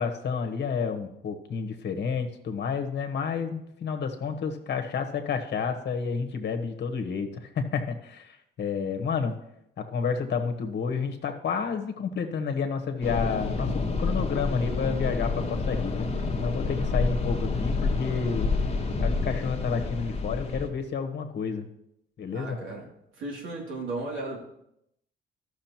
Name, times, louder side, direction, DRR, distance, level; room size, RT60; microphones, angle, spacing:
voice 1, 0.0-9.4 9.8-16.1 16.4-18.5 19.0-21.7 22.2-22.6, left 5 dB, 60° left, 5 dB, 1.2 m, -30 dB
sound 1, 13.0-20.7, left 3 dB, 30° left, 1.3 m, -28 dB
voice 2, 22.3-22.9 23.2-24.4, right 2 dB, 80° right, -2 dB, 2.7 m, -35 dB
13.0 x 6.3 x 3.0 m, 0.79 s
cardioid pair, 90°, 20 cm